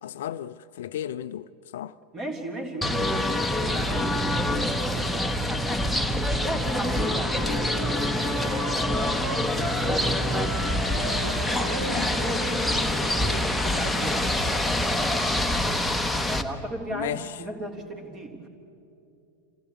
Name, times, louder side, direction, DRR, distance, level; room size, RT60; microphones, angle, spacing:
voice 1, 0.0-2.0 11.8-12.1 16.9-17.3, left 11 dB, 55° left, 0.4 m, -34 dB
voice 2, 2.1-6.1 6.4-10.5 10.9-15.1 16.2-18.5, right 1 dB, 30° right, 3.3 m, -36 dB
sound 1, 2.8-16.4, left 1 dB, ahead, 1.1 m, -26 dB
Wind instrument woodwind instrument, 6.3-10.0 10.3-14.2, right 2 dB, 50° right, 4.1 m, -38 dB
26.5 x 16.0 x 8.1 m
figure-of-eight pair, 90°, 0 cm